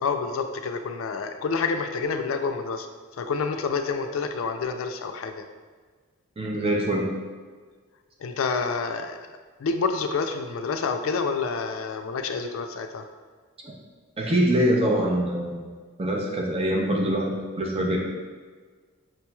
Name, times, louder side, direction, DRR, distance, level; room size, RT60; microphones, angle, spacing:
voice 1, 0.0-2.9 3.1-5.4 8.2-9.2 9.6-13.0, left 4 dB, 70° left, 7 dB, 0.4 m, -28 dB
voice 2, 6.4-7.1 13.6-13.7 14.2-15.6 16.0-18.0, right 1 dB, 30° right, 0 dB, 0.5 m, -24 dB
5.9 x 3.0 x 2.2 m, 1.5 s
head